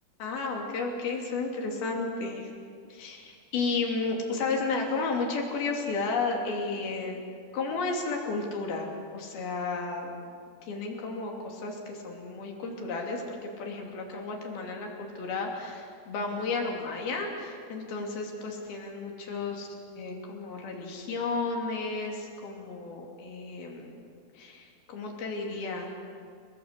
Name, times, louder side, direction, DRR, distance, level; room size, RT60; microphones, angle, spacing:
voice 1, 0.2-2.5 2.9-7.2 7.5-10.1 10.6-19.7 20.0-23.9 24.3-25.9, left 3 dB, 75° left, 1 dB, 4.9 m, -33 dB
29.5 x 18.5 x 8.3 m, 2.2 s
omnidirectional pair, 4.4 m